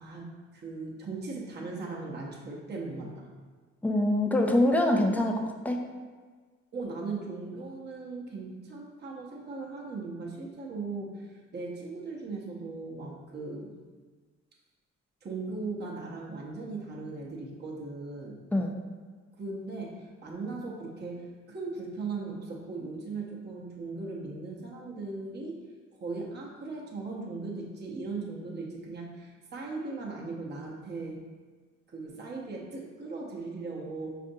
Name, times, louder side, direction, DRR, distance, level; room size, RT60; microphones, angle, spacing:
voice 1, 0.0-3.3 6.7-13.7 15.2-18.4 19.4-25.6 26.0-31.2 31.9-34.2, right 3 dB, 35° right, -3 dB, 0.8 m, -38 dB
voice 2, 3.8-5.8 18.5-18.7, left 1 dB, 5° left, 2 dB, 0.4 m, -25 dB
5.0 x 2.5 x 2.6 m, 1.5 s
cardioid pair, 90°, 30 cm